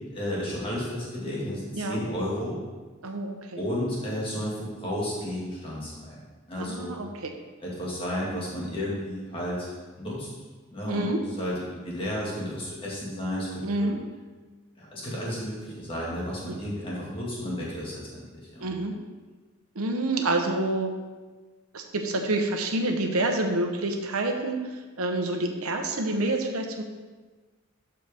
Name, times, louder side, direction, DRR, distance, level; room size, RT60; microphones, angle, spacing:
voice 1, 0.1-2.6 3.6-7.0 7.6-9.7 10.0-10.3 10.7-13.9 14.8-18.2 18.5-18.7, equal, 25° left, -5 dB, 1.9 m, -32 dB
voice 2, 3.0-3.6 6.6-7.3 10.9-11.2 13.6-14.0 16.5-16.6 18.6-19.0 19.7-20.9 21.7-24.6 25.0-26.8, right 2 dB, 90° right, 3 dB, 1.0 m, -27 dB
12.0 x 4.5 x 3.5 m, 1.3 s
head